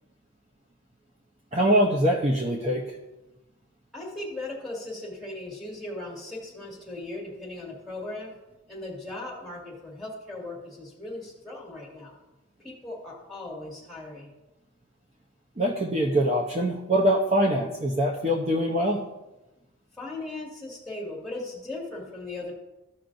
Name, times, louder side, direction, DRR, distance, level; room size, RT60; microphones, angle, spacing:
voice 1, 1.5-2.9 15.6-19.0, equal, 30° right, -1 dB, 0.7 m, -23 dB
voice 2, 3.9-8.3 8.7-12.1 12.6-14.3 20.0-22.5, left 2 dB, ahead, -5 dB, 2.1 m, -38 dB
14.5 x 5.8 x 2.6 m, 1.0 s
head